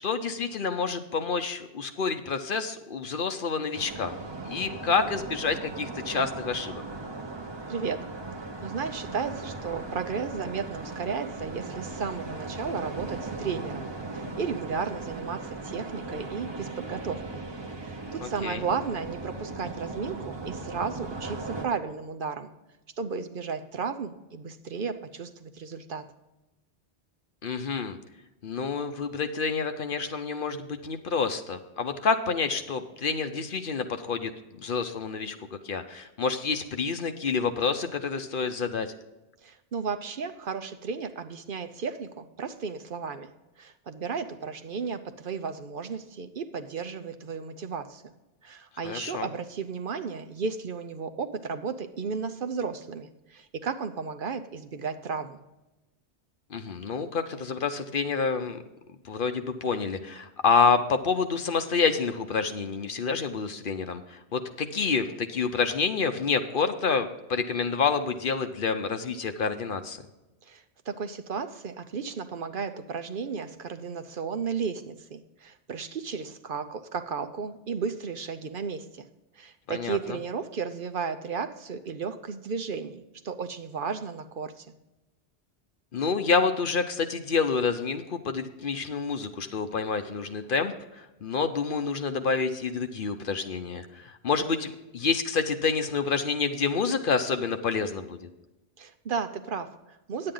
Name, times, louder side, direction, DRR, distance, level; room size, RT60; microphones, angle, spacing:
voice 1, 0.0-4.2 4.5-6.8 18.2-18.6 27.4-28.0 28.4-35.4 35.6-38.9 48.8-49.3 56.5-58.6 59.0-70.0 79.7-80.2 85.9-98.3, left 5 dB, 55° left, 8 dB, 0.9 m, -28 dB
sound 1, 3.7-21.7, right 3 dB, 25° right, 0.9 m, -38 dB
voice 2, 7.7-8.1 8.6-17.4 17.8-22.5 23.0-26.0 39.4-43.3 43.6-48.1 48.4-55.4 70.4-79.1 79.4-84.7 98.8-100.3, right 5 dB, 55° right, 9 dB, 0.8 m, -34 dB
10.0 x 8.7 x 3.8 m, 0.99 s
omnidirectional pair, 1.1 m